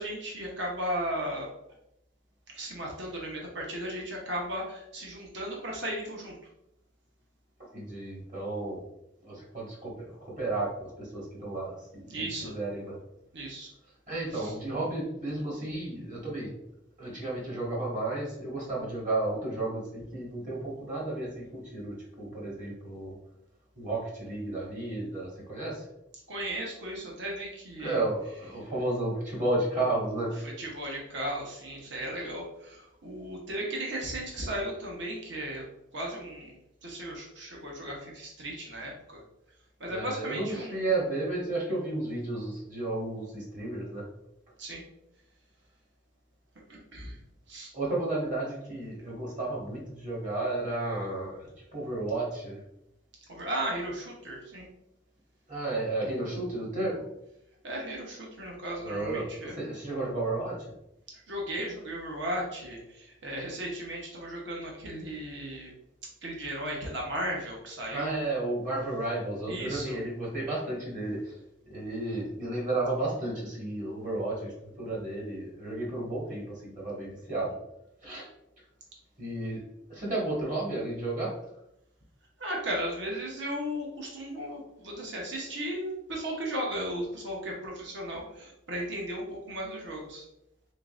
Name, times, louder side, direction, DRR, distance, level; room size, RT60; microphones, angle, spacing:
voice 1, 0.0-1.5 2.5-6.3 12.1-12.5 13.3-13.7 14.3-14.5 26.3-28.0 30.4-35.7 35.9-39.2 39.8-40.8 44.6-44.8 46.7-47.2 47.5-47.7 53.3-54.7 57.6-59.5 61.1-65.7 66.2-68.2 69.5-70.0 82.4-90.2, right 1 dB, 60° right, -1 dB, 0.9 m, -36 dB
voice 2, 7.6-8.8 9.2-13.0 14.1-16.5 17.0-23.1 23.7-25.9 27.8-30.4 32.2-32.3 39.9-44.0 47.7-52.6 55.5-57.0 58.8-60.7 67.9-71.4 71.7-77.5 78.0-78.3 79.2-79.6 79.9-81.3, right 2 dB, 40° right, -4 dB, 1.4 m, -33 dB
3.7 x 3.7 x 2.4 m, 0.83 s
head